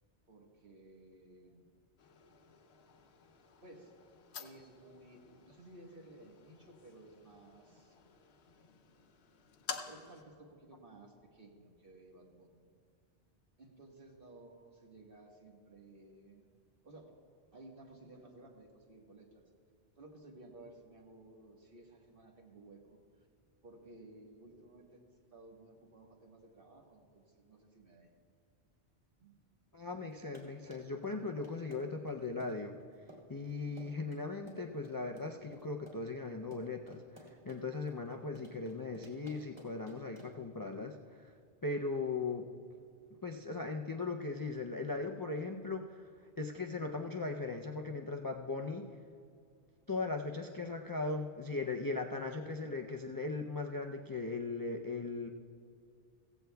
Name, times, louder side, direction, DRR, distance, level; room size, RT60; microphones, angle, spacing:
voice 1, 0.3-1.6 3.6-4.0 4.4-8.0 9.8-12.6 13.6-16.5 16.8-17.1 17.5-19.4 20.0-23.3 23.6-25.0 25.3-28.1 29.2-29.4, right 2 dB, 55° right, 0 dB, 1.7 m, -56 dB
sound 1, 2.0-10.2, left 5 dB, 65° left, 0.9 m, -51 dB
voice 2, 29.7-32.7 33.3-41.3 41.6-42.5 43.2-46.1 46.4-48.9 49.9-55.3, left 3 dB, 35° left, 2 dB, 0.3 m, -38 dB
Run, 30.1-40.5, equal, 15° right, 2.4 m, -55 dB
16.0 x 15.0 x 2.3 m, 2.3 s
omnidirectional pair, 1.1 m